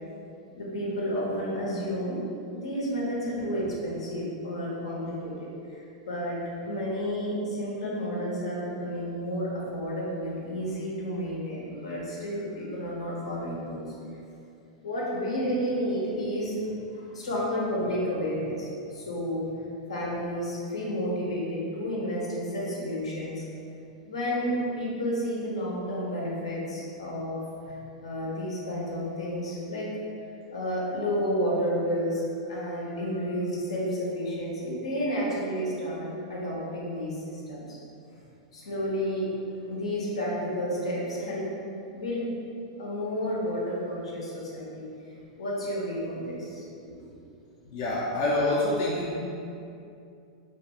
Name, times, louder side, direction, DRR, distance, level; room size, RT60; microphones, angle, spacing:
voice 1, 0.6-6.4 6.7-14.0 14.8-16.6 16.9-19.5 19.9-23.4 24.0-27.8 28.0-29.9 30.5-32.2 32.5-37.8 38.5-39.3 39.7-41.5 41.9-42.2 42.8-44.9 45.4-46.6, equal, 90° left, -5 dB, 0.7 m, -31 dB
voice 2, 47.7-49.2, left 2 dB, 55° left, -6 dB, 0.4 m, -26 dB
2.4 x 2.3 x 2.8 m, 2.6 s
hypercardioid pair, 115°, 3 cm